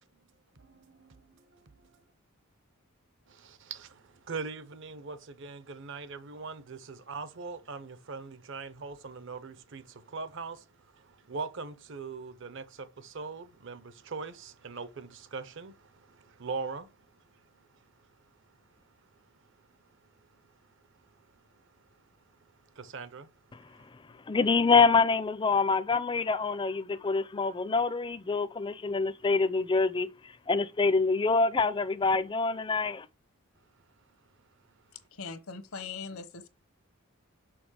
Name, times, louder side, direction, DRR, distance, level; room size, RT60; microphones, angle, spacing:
voice 1, 0.6-1.6 3.3-10.6 11.0-16.9 22.8-23.3, right 4 dB, 60° right, 0.8 m, -41 dB
voice 2, 24.3-33.1, left 4 dB, 25° left, 0.4 m, -26 dB
voice 3, 35.1-36.5, left 5 dB, 80° left, 1.0 m, -40 dB
6.2 x 5.6 x 4.7 m
head